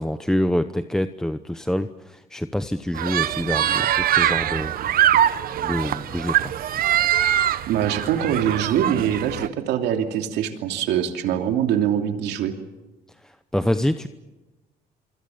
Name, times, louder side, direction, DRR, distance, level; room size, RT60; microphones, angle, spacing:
voice 1, 0.0-4.9 5.6-6.5 13.2-14.1, left 1 dB, 5° left, 10 dB, 0.8 m, -26 dB
sound 1, 2.9-9.5, right 11 dB, 60° right, 1.0 m, -22 dB
voice 2, 7.7-12.5, right 9 dB, 85° right, 5 dB, 2.9 m, -23 dB
26.5 x 25.0 x 7.2 m, 1.1 s
cardioid pair, 110°, 17 cm